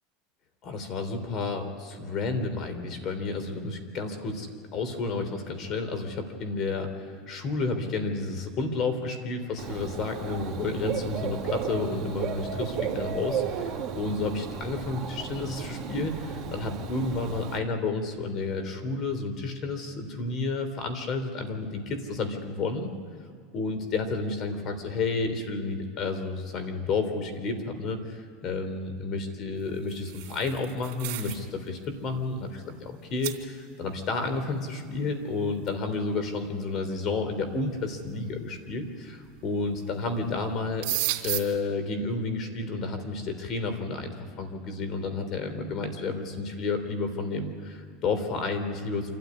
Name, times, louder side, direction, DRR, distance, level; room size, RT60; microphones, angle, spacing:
voice 1, 0.6-22.9 23.5-40.9 41.2-49.1, left 3 dB, 40° left, 8 dB, 3.4 m, -31 dB
Dog / Bird, 9.6-17.6, right 6 dB, 30° right, 2.6 m, -34 dB
sound 1, 29.7-31.5 31.8-32.1 32.7-32.8 33.2-33.4 35.7-35.8 36.7-36.8 37.6-38.0 39.3-39.7 40.0-40.2 40.5-41.4, right 17 dB, 70° right, 3.0 m, -33 dB
27.5 x 13.5 x 9.9 m, 2.1 s
supercardioid pair, 130°, 0 cm